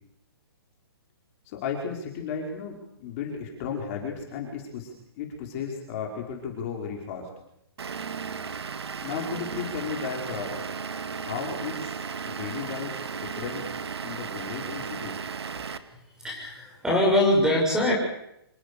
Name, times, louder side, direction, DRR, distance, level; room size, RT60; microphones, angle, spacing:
voice 1, 1.4-7.3 9.0-10.6 11.1-12.0 12.2-13.6 14.0-15.2, left 6 dB, 35° left, 0 dB, 5.1 m, -34 dB
Vehicle / Engine, 7.8-15.8, right 6 dB, 80° right, 2.2 m, -35 dB
voice 2, 16.2-17.9, left 1 dB, 5° right, -1 dB, 7.0 m, -22 dB
26.5 x 22.0 x 7.0 m, 0.80 s
hypercardioid pair, 160°, 13 cm